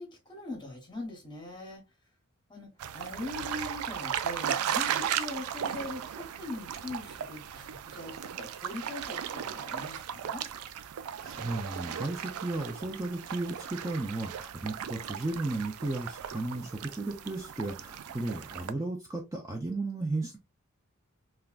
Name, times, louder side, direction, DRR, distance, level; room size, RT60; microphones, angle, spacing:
voice 1, 0.0-1.8 2.5-10.4, left 2 dB, 20° left, 0.9 m, -41 dB
sound 1, 2.8-18.7, right 9 dB, 90° right, 0.3 m, -36 dB
voice 2, 11.2-20.4, right 2 dB, 15° right, 0.4 m, -34 dB
3.5 x 2.2 x 2.3 m
head